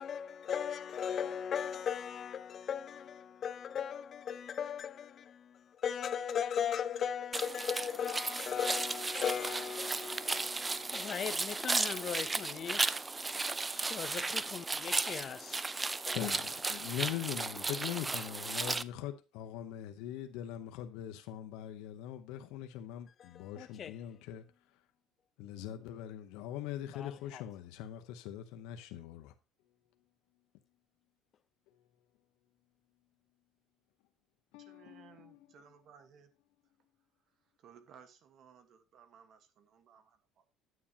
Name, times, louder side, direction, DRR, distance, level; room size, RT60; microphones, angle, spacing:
voice 1, 0.0-13.0 13.7-15.6 15.9-16.2 23.2-24.0 26.9-27.4, left 8 dB, 45° left, 0.6 m, -38 dB
sound 1, 7.3-18.8, right 3 dB, 15° right, 0.4 m, -35 dB
voice 2, 16.1-24.4 25.4-29.3 34.5-35.5, left 11 dB, 85° left, 0.8 m, -42 dB
voice 3, 34.6-36.3 37.6-40.5, right 7 dB, 55° right, 1.3 m, -59 dB
9.4 x 8.6 x 2.8 m
cardioid pair, 115°, 0 cm